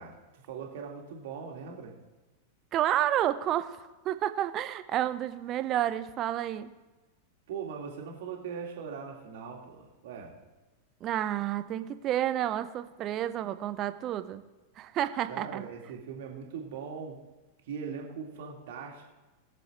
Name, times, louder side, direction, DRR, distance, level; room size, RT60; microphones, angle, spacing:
voice 1, 0.0-1.9 7.5-10.3 15.3-17.2 17.6-19.1, right 6 dB, 55° right, 0 dB, 2.1 m, -40 dB
voice 2, 2.7-6.7 11.0-14.4 14.8-15.7, right 12 dB, 35° right, 11 dB, 0.7 m, -30 dB
20.5 x 7.0 x 3.1 m, 1.2 s
figure-of-eight pair, 90°, 0 cm